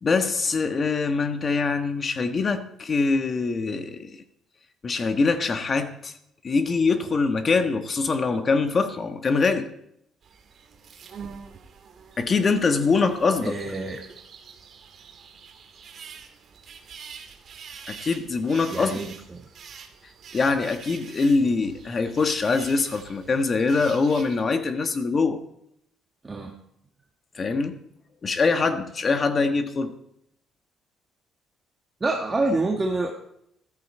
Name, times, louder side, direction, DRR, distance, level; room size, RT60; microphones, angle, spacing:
voice 1, 0.0-4.1 4.8-6.1 6.4-9.7 12.2-13.6 17.9-19.0 20.3-25.4 27.3-27.8 28.2-29.9, left 4 dB, 30° left, 1.4 m, -23 dB
sound 1, 10.2-24.4, right 6 dB, 45° right, 2.2 m, -45 dB
voice 2, 13.4-14.0 18.7-19.4 26.2-26.5 32.0-33.1, right 2 dB, 20° right, 1.6 m, -27 dB
14.0 x 14.0 x 4.4 m
cardioid pair, 140°, 0 cm